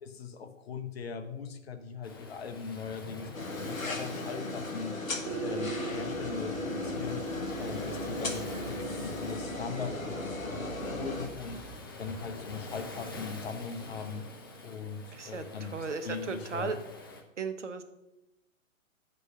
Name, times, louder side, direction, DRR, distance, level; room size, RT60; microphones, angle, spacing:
voice 1, 0.0-3.3 3.6-5.0 5.4-7.2 7.6-11.6 12.0-14.2 14.6-16.8, left 6 dB, 50° left, 7 dB, 1.0 m, -40 dB
Waves surf, 2.0-17.2, left 2 dB, 20° left, 0.4 m, -47 dB
sound 1, 3.3-11.3, left 2 dB, 80° left, 1.2 m, -37 dB
sound 2, 5.3-11.8, right 1 dB, 30° right, 1.7 m, -39 dB
voice 2, 15.1-16.8 17.4-17.8, right 4 dB, 60° right, 8 dB, 1.0 m, -36 dB
8.1 x 5.4 x 5.4 m, 0.91 s
figure-of-eight pair, 125°, 40 cm